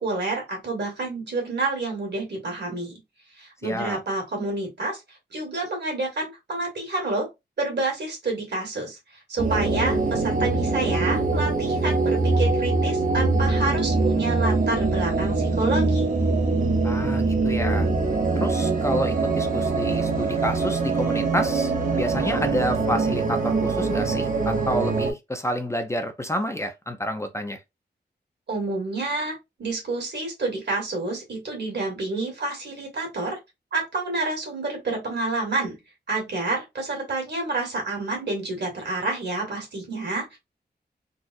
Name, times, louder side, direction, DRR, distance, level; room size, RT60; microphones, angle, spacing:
voice 1, 0.0-3.0 3.4-7.3 7.6-16.1 28.5-33.4 33.7-35.8 36.1-40.4, right 2 dB, 70° right, 1.9 m, -29 dB
voice 2, 3.6-4.0 16.8-17.9 18.3-27.6, equal, 15° left, 0.5 m, -29 dB
sound 1, 9.4-25.1, right 3 dB, 50° right, 0.8 m, -23 dB
3.9 x 2.4 x 2.5 m
wide cardioid pair, 125°, 18 cm